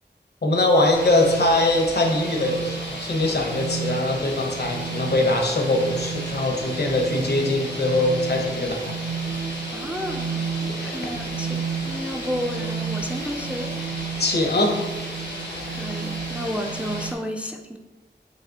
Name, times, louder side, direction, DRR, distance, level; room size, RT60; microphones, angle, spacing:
voice 1, 0.4-9.0 10.8-10.9 14.2-14.8, left 2 dB, 65° left, 2 dB, 0.7 m, -22 dB
sound 1, 0.6-17.1, right 6 dB, 75° right, 0.4 m, -33 dB
sound 2, 0.9-17.1, left 1 dB, 85° left, 1.2 m, -35 dB
voice 2, 9.7-13.7 15.7-17.8, equal, 5° right, 2 dB, 0.3 m, -32 dB
4.7 x 3.0 x 2.7 m, 1.1 s
wide cardioid pair, 50°, 18 cm